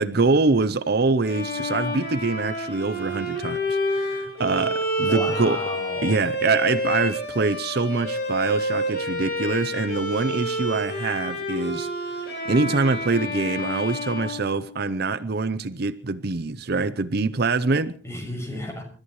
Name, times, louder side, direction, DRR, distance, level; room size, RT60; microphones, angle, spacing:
voice 1, 0.0-5.6 6.0-11.9 12.5-18.0, right 3 dB, 55° right, 0.7 m, -24 dB
Bowed string instrument, 1.2-15.1, equal, 55° left, 7.9 m, -29 dB
voice 2, 5.1-6.2 18.0-18.8, left 1 dB, 15° left, 6.4 m, -33 dB
29.0 x 14.0 x 3.2 m
head